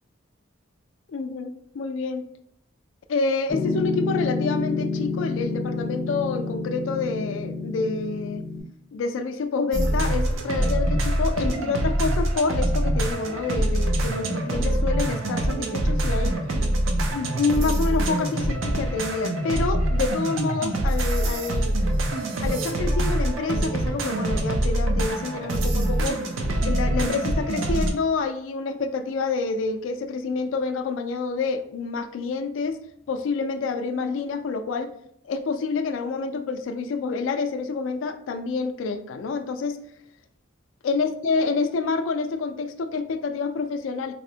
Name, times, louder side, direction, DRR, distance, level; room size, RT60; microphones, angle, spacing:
voice 1, 1.1-2.3 3.1-8.4 8.9-16.4 17.1-21.7 22.4-26.2 26.6-32.8 33.1-34.9 35.2-39.9 40.8-44.1, left 4 dB, 80° left, 8 dB, 0.3 m, -28 dB
Piano, 3.5-8.6, left 4 dB, 10° left, 0.9 m, -29 dB
sound 1, 9.7-27.9, right 1 dB, 85° right, 0.5 m, -24 dB
4.1 x 2.0 x 2.7 m, 0.69 s
head